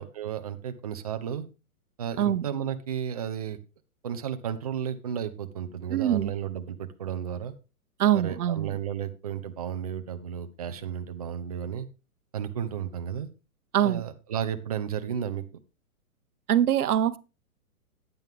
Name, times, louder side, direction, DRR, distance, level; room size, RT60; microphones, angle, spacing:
voice 1, 0.0-1.5 2.0-3.6 4.0-7.5 8.1-11.9 12.3-13.3 13.8-15.4, right 9 dB, 25° right, 0.5 m, -33 dB
voice 2, 5.9-6.3 8.0-8.8 13.7-14.0 16.5-17.2, right 10 dB, 90° right, 0.8 m, -23 dB
9.2 x 9.1 x 3.5 m
hypercardioid pair, 165°, 44 cm